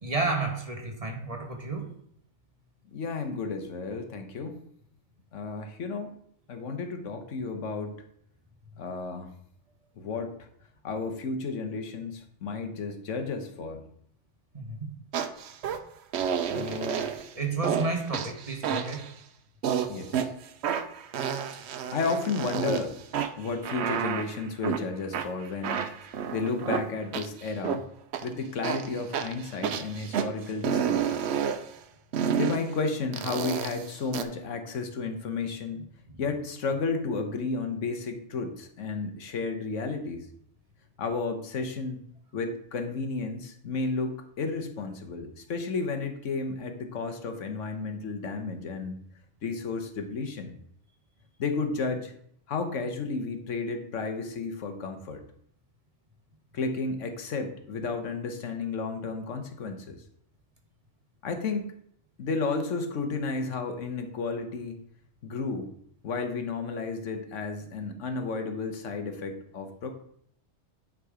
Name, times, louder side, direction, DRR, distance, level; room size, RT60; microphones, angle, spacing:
voice 1, 0.0-1.9 14.5-14.9 16.5-16.8 17.3-19.1, right 3 dB, 30° right, 2 dB, 1.2 m, -31 dB
voice 2, 2.9-4.6 5.3-6.2 6.5-8.0 8.8-9.3 10.0-10.5 10.8-13.8 16.5-17.1 19.9-20.3 21.9-23.0 23.4-25.9 26.3-27.8 28.2-31.2 32.4-35.8 36.2-40.2 41.0-42.0 42.3-49.0 49.4-50.5 51.4-52.1 52.5-55.2 56.5-60.0 61.2-61.7 62.2-64.7 65.2-65.7 66.0-69.9, left 4 dB, 90° left, 6 dB, 1.3 m, -32 dB
sound 1, 15.1-15.8 16.1-17.3 17.6-17.9 18.1-19.1 19.6-20.3 20.6-22.8 23.1-24.8 25.1-27.8 28.1-28.3 28.6-30.3 30.6-31.6 32.1-32.6 33.1-34.2, right 8 dB, 70° right, 0.9 m, -30 dB
9.7 x 3.8 x 4.9 m, 0.66 s
omnidirectional pair, 1.2 m